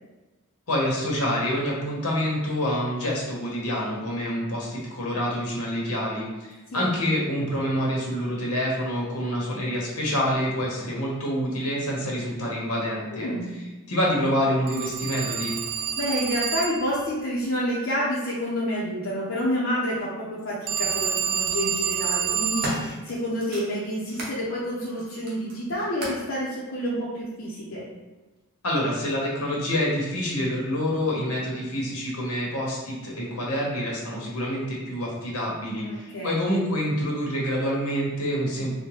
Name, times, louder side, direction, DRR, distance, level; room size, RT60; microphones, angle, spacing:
voice 1, 0.7-13.3 13.9-15.6 28.6-38.8, equal, 80° left, -4 dB, 1.1 m, -27 dB
voice 2, 13.1-13.5 16.0-27.8 35.8-36.4, equal, 60° left, -7 dB, 0.7 m, -29 dB
Telephone, 14.7-17.0 20.7-22.9, right 8 dB, 80° right, 0.4 m, -28 dB
sound 1, 20.0-20.1 21.2-21.5 22.1-24.4 24.8-26.3 27.2-27.3, right 1 dB, 45° right, 0.8 m, -37 dB
4.3 x 2.2 x 3.1 m, 1.2 s
head